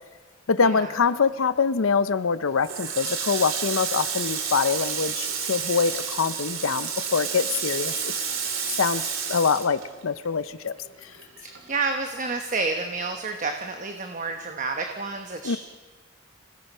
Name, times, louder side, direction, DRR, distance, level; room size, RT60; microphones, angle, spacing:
voice 1, 0.5-8.1 8.8-9.0 9.3-10.7 11.0-11.1 15.4-15.6, left 5 dB, 85° left, 15 dB, 0.6 m, -24 dB
Water tap faucet, 2.6-10.5 10.8-12.1, right 7 dB, 80° right, 2.8 m, -30 dB
voice 2, 11.4-15.6, right 3 dB, 40° right, 5 dB, 1.1 m, -30 dB
27.5 x 17.0 x 5.5 m, 1.5 s
head